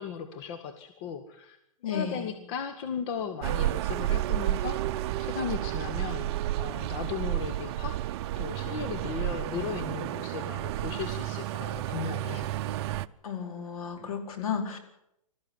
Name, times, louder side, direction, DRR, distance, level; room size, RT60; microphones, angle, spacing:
voice 1, 0.0-1.6 1.9-4.8 5.2-8.0 8.4-12.5, left 7 dB, 45° left, 8 dB, 1.9 m, -36 dB
voice 2, 1.8-2.3 13.2-14.8, left 7 dB, 75° left, 5 dB, 4.6 m, -33 dB
sound 1, 3.4-13.1, right 14 dB, 50° right, 0.7 m, -31 dB
20.5 x 14.0 x 9.9 m, 0.80 s
hypercardioid pair, 130°, 18 cm